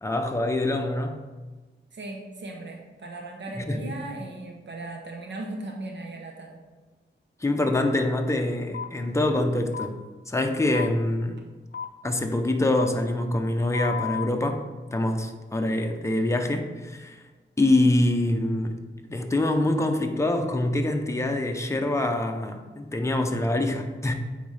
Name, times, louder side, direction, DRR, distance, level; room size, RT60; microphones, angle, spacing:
voice 1, 0.0-1.2 3.7-3.8 7.4-10.0 10.3-11.4 12.0-14.6 14.9-17.2 17.6-18.8 19.1-24.1, left 1 dB, 15° left, 4 dB, 0.6 m, -25 dB
voice 2, 1.9-6.6, right 2 dB, 65° right, 1 dB, 0.9 m, -37 dB
sound 1, 8.7-8.9 9.7-9.9 10.7-10.9 11.7-11.9 12.7-12.9 13.7-14.3, left 8 dB, 55° left, 0.5 m, -32 dB
9.1 x 4.0 x 3.3 m, 1.3 s
wide cardioid pair, 110°, 20 cm